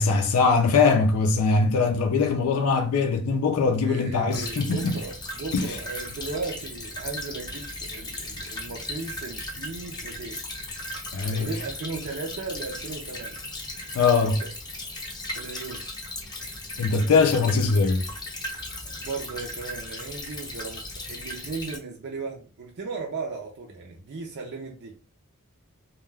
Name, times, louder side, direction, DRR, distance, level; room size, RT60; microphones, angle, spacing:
voice 1, 0.0-4.9 5.5-5.8 11.1-11.5 13.9-14.4 16.8-18.1, left 4 dB, 75° left, 0.4 m, -22 dB
voice 2, 3.8-10.4 11.3-13.4 14.0-14.3 15.3-15.8 18.8-20.8 21.1-24.9, right 4 dB, 50° right, 0.5 m, -36 dB
Stream / Trickle dribble, 4.3-21.8, left 1 dB, 20° left, 0.6 m, -37 dB
2.2 x 2.2 x 3.2 m
head